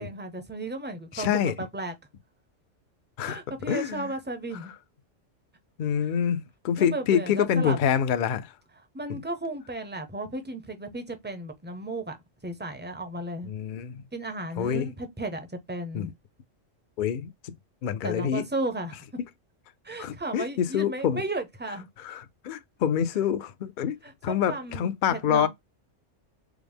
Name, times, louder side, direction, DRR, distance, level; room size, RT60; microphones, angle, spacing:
voice 1, 0.0-1.3 1.6-1.9 3.3-4.7 6.8-7.8 8.9-12.2 12.4-13.5 14.1-16.1 18.0-19.0 19.8-21.9 24.0-25.5, right 2 dB, 15° right, 0.4 m, -34 dB
voice 2, 1.1-1.5 3.2-3.4 3.7-4.1 5.8-8.5 9.1-9.2 13.4-14.0 14.6-14.9 15.9-16.1 17.0-17.3 17.8-18.4 20.0-21.2 22.0-25.5, left 8 dB, 65° left, 0.5 m, -26 dB
4.8 x 2.0 x 3.4 m
omnidirectional pair, 1.3 m